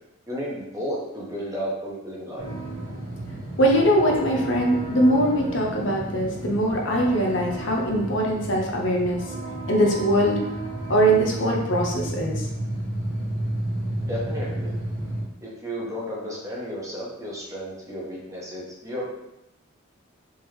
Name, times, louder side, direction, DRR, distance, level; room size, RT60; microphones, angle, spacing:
voice 1, 0.3-2.5 14.1-14.8 15.4-19.1, equal, 15° right, -5 dB, 0.8 m, -33 dB
sound 1, 2.4-15.2, right 1 dB, 60° right, 1.1 m, -32 dB
voice 2, 3.6-9.3 9.7-10.4 10.9-12.5, right 1 dB, 60° left, -1 dB, 0.6 m, -22 dB
3.5 x 2.9 x 3.1 m, 0.87 s
head